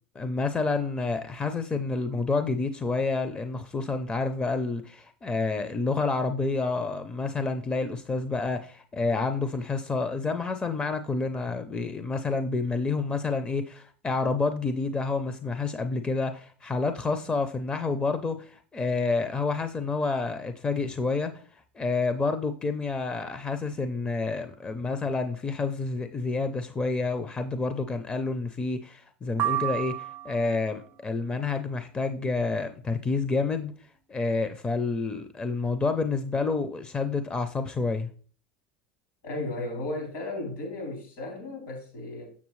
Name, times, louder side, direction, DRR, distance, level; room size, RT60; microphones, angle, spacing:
voice 1, 0.1-33.7 34.1-38.1, left 3 dB, 20° left, 0.5 m, -29 dB
sound 1, 29.4-30.7, right 13 dB, 40° right, 0.4 m, -30 dB
voice 2, 39.2-42.3, left 2 dB, 65° left, 3.5 m, -35 dB
7.1 x 6.7 x 3.1 m
supercardioid pair, 115°, 5 cm